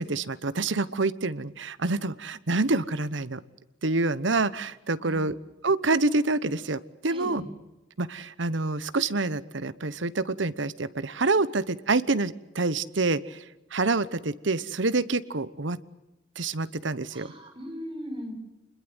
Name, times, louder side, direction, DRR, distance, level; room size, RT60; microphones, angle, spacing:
voice 1, 0.0-3.4 3.8-5.3 5.6-7.4 8.0-13.4 13.7-15.8 16.4-17.3, right 3 dB, 70° right, 16 dB, 1.1 m, -27 dB
voice 2, 5.0-5.3 7.1-7.5 17.1-18.3, equal, 25° right, 2 dB, 6.0 m, -38 dB
27.0 x 21.0 x 8.0 m, 1.0 s
head